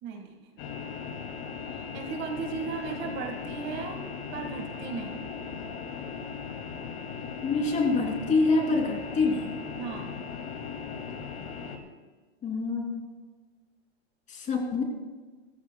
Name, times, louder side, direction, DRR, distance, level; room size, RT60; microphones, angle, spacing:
voice 1, 0.0-0.6 1.9-4.0 4.3-5.2 9.8-10.1, right 5 dB, 35° right, 4 dB, 1.8 m, -36 dB
sound 1, 0.6-11.8, left 6 dB, 50° left, 2.5 m, -38 dB
voice 2, 7.4-9.5 12.4-13.1 14.3-14.8, left 3 dB, 25° left, 1 dB, 2.9 m, -26 dB
26.0 x 14.5 x 2.3 m, 1.4 s
hypercardioid pair, 135°, 32 cm